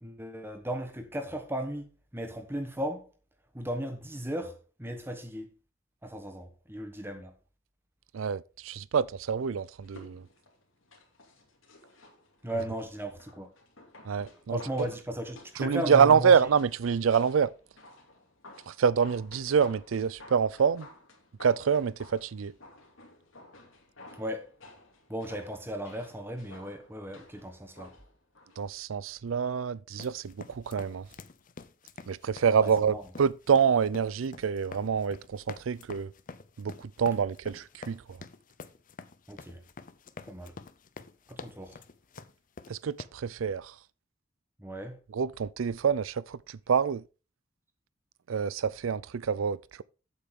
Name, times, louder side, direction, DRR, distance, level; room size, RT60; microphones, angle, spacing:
voice 1, 0.0-3.1 3.5-5.5 6.0-7.3 12.4-13.5 14.5-16.3 24.2-24.5 25.1-27.9 32.6-33.0 39.3-39.6 40.2-40.5 41.3-41.8 44.6-45.0, equal, 10° right, 1.2 m, -36 dB
voice 2, 8.1-10.2 14.0-14.6 15.6-17.5 18.7-20.9 21.4-22.5 28.6-31.0 32.1-36.1 36.6-38.2 42.7-43.7 45.1-47.0 48.3-49.8, right 6 dB, 85° right, 0.4 m, -26 dB
sound 1, 9.8-28.6 28.9-29.0, left 2 dB, 85° left, 2.5 m, -54 dB
sound 2, 29.9-43.0, left 4 dB, 45° left, 0.6 m, -47 dB
8.5 x 8.1 x 3.7 m
head